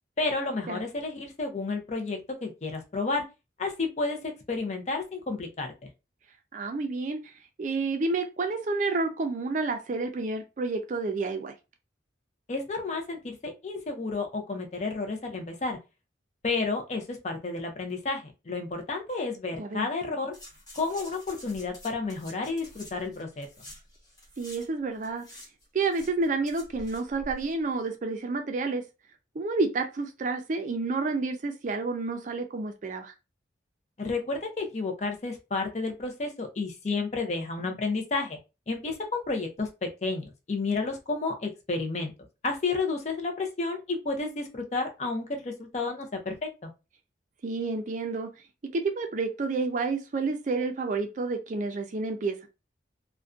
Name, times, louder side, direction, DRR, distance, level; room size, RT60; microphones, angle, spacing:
voice 1, 0.2-3.2 3.6-5.9 12.5-15.8 16.4-20.3 20.7-23.5 34.0-38.4 38.7-42.1 42.4-46.7, left 3 dB, 40° left, 0.5 m, -31 dB
voice 2, 6.5-7.3 7.6-11.5 19.6-19.9 24.4-25.3 25.7-28.8 29.4-33.1 47.4-48.3 48.7-52.5, right 3 dB, 45° right, 0.4 m, -29 dB
sound 1, 20.3-24.7 24.9-27.5 27.8-27.9, left 1 dB, 20° left, 0.9 m, -48 dB
2.5 x 2.1 x 2.4 m
head